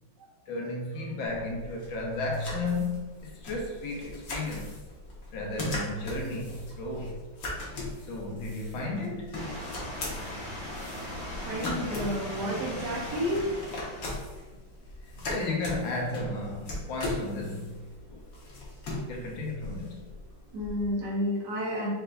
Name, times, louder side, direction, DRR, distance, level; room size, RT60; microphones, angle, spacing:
voice 1, 0.5-4.7 5.3-7.2 8.1-9.4 15.3-17.8 18.1-18.2 19.1-20.0, left 2 dB, 75° left, -1 dB, 1.6 m, -33 dB
sound 1, 1.2-20.9, left 2 dB, 50° left, 1.3 m, -39 dB
sound 2, 9.3-14.3, equal, 25° left, 1.6 m, -39 dB
voice 2, 11.5-13.5 15.2-15.3 20.5-21.9, equal, 60° right, -4 dB, 1.6 m, -31 dB
5.5 x 3.9 x 2.3 m, 1.2 s
omnidirectional pair, 2.2 m